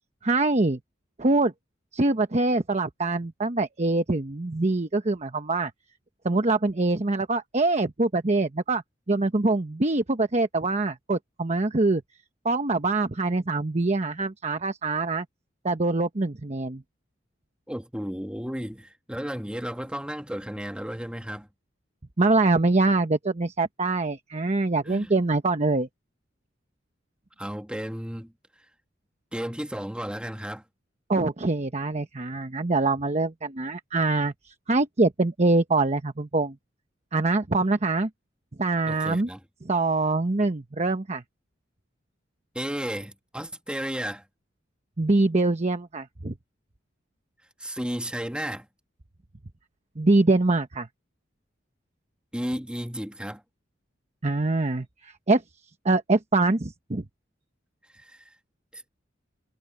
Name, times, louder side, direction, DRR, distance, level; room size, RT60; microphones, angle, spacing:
voice 1, 0.2-0.8 1.2-1.5 1.9-5.7 6.2-8.8 9.1-12.0 12.4-15.2 15.6-16.8 22.2-25.9 31.1-36.5 37.1-38.1 38.6-39.3 39.6-41.2 45.0-46.3 50.0-50.9 54.2-55.4 55.8-57.0, right 2 dB, 35° right, 1.0 m, -24 dB
voice 2, 17.7-21.5 24.8-25.1 27.4-28.3 29.3-30.6 38.9-39.4 42.5-44.2 47.6-48.6 52.3-53.4 57.9-58.3 58.7-58.8, equal, 5° right, 1.7 m, -33 dB
head